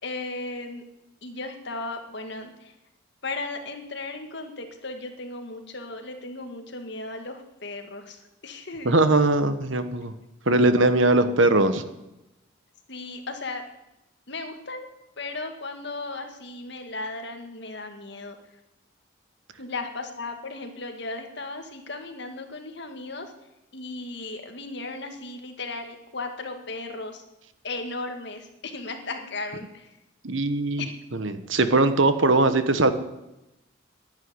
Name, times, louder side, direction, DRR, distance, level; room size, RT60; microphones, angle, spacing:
voice 1, 0.0-0.8 1.2-2.7 3.2-8.9 12.9-13.6 14.3-14.9 15.2-18.4 19.6-23.3 23.7-27.2 27.6-29.9 30.8-30.9, left 3 dB, 55° left, 5 dB, 2.0 m, -36 dB
voice 2, 8.8-10.1 10.5-11.8 30.2-30.9 31.1-32.9, right 2 dB, 70° right, 10 dB, 1.3 m, -20 dB
11.0 x 10.5 x 9.8 m, 0.92 s
head